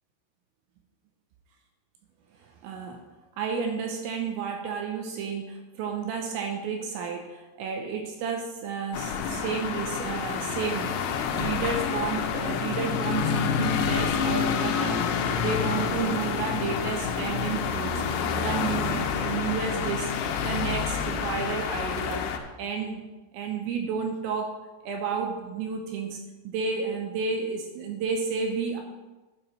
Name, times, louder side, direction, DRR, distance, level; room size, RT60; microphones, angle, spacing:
voice 1, 2.6-3.0 3.4-20.1 20.4-22.3 22.6-23.0 23.3-24.5 24.8-26.2 26.4-28.8, right 5 dB, 80° right, 3 dB, 2.9 m, -31 dB
sound 1, 8.9-22.4, left 6 dB, 85° left, 2.3 m, -28 dB
11.5 x 4.9 x 5.8 m, 1.1 s
omnidirectional pair, 5.6 m